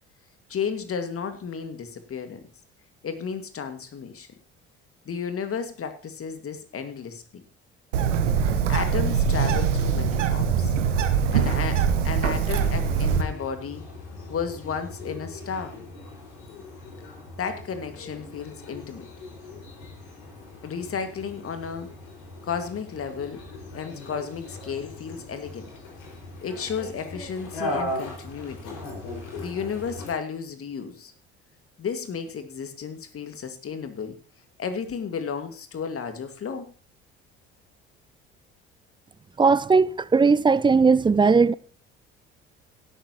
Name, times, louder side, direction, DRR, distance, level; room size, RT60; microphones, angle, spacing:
voice 1, 0.5-2.4 3.0-4.3 5.1-7.4 8.7-10.7 11.3-13.8 14.3-15.8 17.4-19.1 20.6-21.9 22.4-23.4 23.7-25.7 26.4-28.8 29.4-31.1 31.8-34.2 34.6-36.7, left 6 dB, 40° left, 2.1 m, -33 dB
Bird, 7.9-13.2, right 6 dB, 80° right, 1.4 m, -23 dB
sound 1, 12.3-30.1, left 1 dB, 65° left, 5.4 m, -39 dB
voice 2, 39.4-41.5, right 4 dB, 15° right, 0.5 m, -18 dB
17.0 x 12.0 x 3.0 m
figure-of-eight pair, 55°, 36 cm